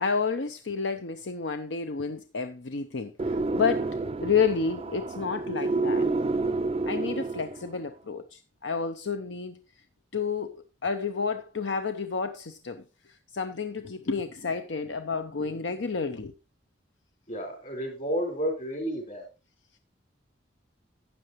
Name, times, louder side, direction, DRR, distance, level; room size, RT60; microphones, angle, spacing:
voice 1, 0.0-3.9 4.2-6.1 6.8-9.6 10.1-12.8 13.3-16.3, left 5 dB, 85° left, 0.8 m, -30 dB
sound 1, 3.2-7.8, right 3 dB, 35° right, 0.4 m, -29 dB
voice 2, 17.3-19.2, equal, 50° left, 4.5 m, -31 dB
12.5 x 8.8 x 3.1 m
head